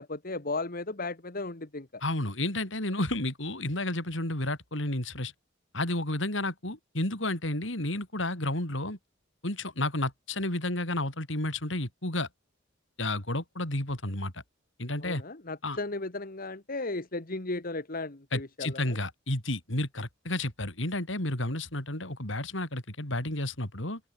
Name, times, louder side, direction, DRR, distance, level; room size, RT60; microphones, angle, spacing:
voice 1, 0.0-2.0 15.0-19.0, left 2 dB, 50° left, 1.9 m, -35 dB
voice 2, 2.0-5.3 5.7-9.0 9.4-12.3 13.0-14.4 14.8-15.2 15.6-15.8 18.3-24.0, left 1 dB, 70° left, 5.8 m, -31 dB
open air
head